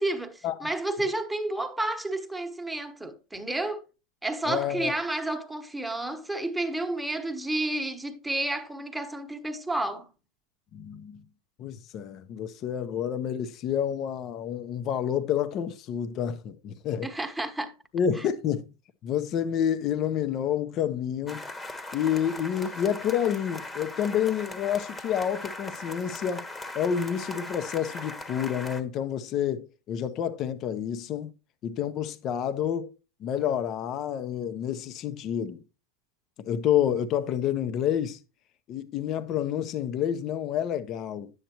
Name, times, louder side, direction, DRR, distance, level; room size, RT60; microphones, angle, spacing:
voice 1, 0.0-3.8 4.2-10.0 17.0-17.7, right 2 dB, 5° right, 1.2 m, -31 dB
voice 2, 4.5-4.9 10.7-11.2 11.6-17.1 17.9-18.7 19.0-21.4 21.9-26.4 26.7-31.3 31.6-32.9 33.2-35.6 36.5-38.2 38.7-41.3, left 9 dB, 40° left, 0.8 m, -29 dB
sound 1, 21.3-28.8, left 2 dB, 15° left, 1.2 m, -39 dB
10.0 x 8.0 x 3.0 m
hypercardioid pair, 115°, 0 cm